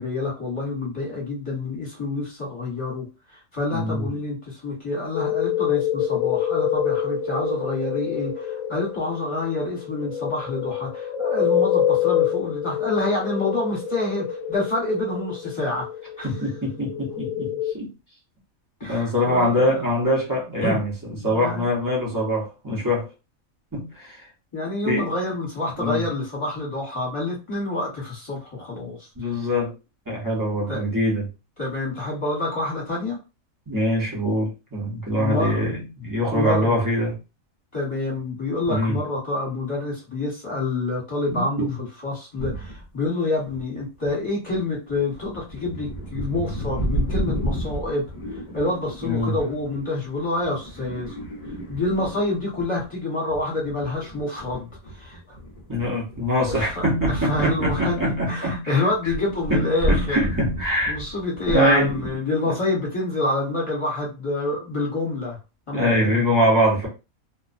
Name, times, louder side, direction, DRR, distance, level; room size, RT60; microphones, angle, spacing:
voice 1, 0.0-15.9 16.2-16.5 18.8-19.9 20.6-20.8 21.1-21.7 22.7-22.8 24.5-29.5 30.7-30.9 31.6-33.2 35.2-35.7 36.3-36.8 37.7-41.7 42.0-48.0 48.3-51.1 51.7-55.4 56.4-60.2 60.9-65.4 65.7-66.2, left 2 dB, 25° left, -3 dB, 1.0 m, -27 dB
voice 2, 3.7-4.0 16.2-17.9 18.8-23.1 23.7-24.3 24.8-25.0 25.8-26.0 28.8-28.9 29.2-29.7 30.1-31.2 33.7-37.1 38.7-39.0 41.3-41.8 49.0-49.3 55.7-58.8 59.5-61.0 61.5-61.9 62.5-62.6 65.7-66.9, equal, 20° right, -3 dB, 0.6 m, -23 dB
sound 1, 5.1-17.7, left 9 dB, 70° left, 0.9 m, -26 dB
sound 2, 42.4-42.8 43.5-44.1 44.5-52.9 53.3-58.6 58.9-62.2, equal, 40° left, 0.6 m, -32 dB
2.4 x 2.1 x 2.5 m, 0.29 s
omnidirectional pair, 1.5 m